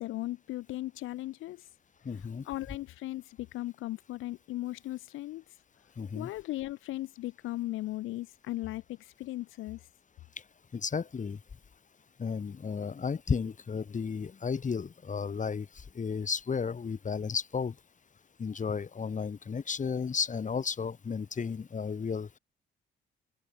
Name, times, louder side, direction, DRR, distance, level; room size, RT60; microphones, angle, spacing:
voice 1, 0.0-1.6 2.5-5.4 6.1-9.8, left 16 dB, 90° left, 1.9 m, -37 dB
voice 2, 2.0-2.5 6.0-6.3 10.7-11.4 12.2-17.8 18.4-22.4, left 5 dB, 40° left, 5.4 m, -33 dB
open air
cardioid pair, 90°, 20 cm